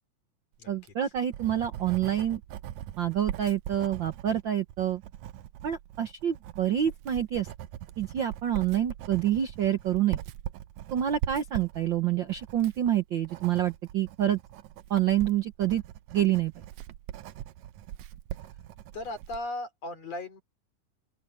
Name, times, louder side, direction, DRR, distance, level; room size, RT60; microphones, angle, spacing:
Writing, 0.7-19.5, right 12 dB, 75° right, 1.9 m, -41 dB
voice 1, 0.7-2.4 3.0-5.0 5.6-7.5 8.0-10.2 10.9-14.4 14.9-15.8 16.1-16.5, right 11 dB, 90° right, 1.0 m, -27 dB
voice 2, 18.9-20.4, left 2 dB, 55° left, 4.4 m, -36 dB
open air
omnidirectional pair, 3.6 m